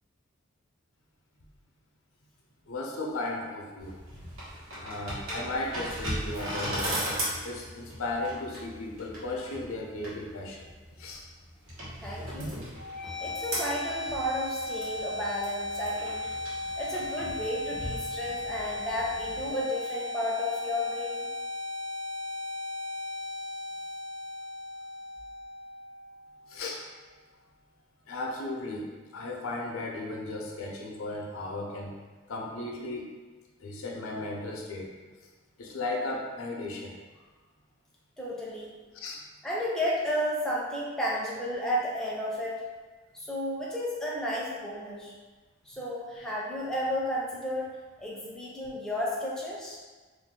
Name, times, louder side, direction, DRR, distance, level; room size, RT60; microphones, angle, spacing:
voice 1, 2.7-4.0 4.8-7.1 7.4-10.7 11.0-11.2 12.4-12.5 26.5-26.8 28.1-31.9 32.3-33.1 33.6-34.9 35.6-36.9 38.9-39.2 45.7-45.8, left 2 dB, 90° left, -1 dB, 0.6 m, -35 dB
sound 1, 3.8-19.5, equal, 85° right, 1.2 m, -38 dB
voice 2, 12.0-12.5 13.2-16.3 16.8-21.3 38.2-38.7 39.4-42.6 43.1-45.1 45.7-47.7 48.0-49.8, equal, 5° left, -6 dB, 0.4 m, -32 dB
sound 2, 12.8-26.7, left 2 dB, 60° right, 0.9 m, -36 dB
2.6 x 2.3 x 3.6 m, 1.4 s
head